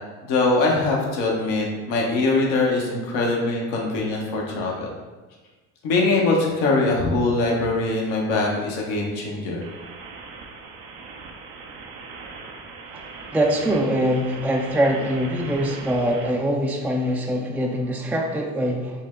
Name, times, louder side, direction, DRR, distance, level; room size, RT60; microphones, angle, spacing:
voice 1, 0.2-4.9 5.8-9.6, left 2 dB, 70° left, -2 dB, 1.2 m, -22 dB
sound 1, 9.6-16.3, right 4 dB, 70° right, 0.8 m, -40 dB
voice 2, 13.3-19.0, equal, 5° right, 0 dB, 0.5 m, -23 dB
6.0 x 2.1 x 3.6 m, 1.3 s
hypercardioid pair, 60°, 44 cm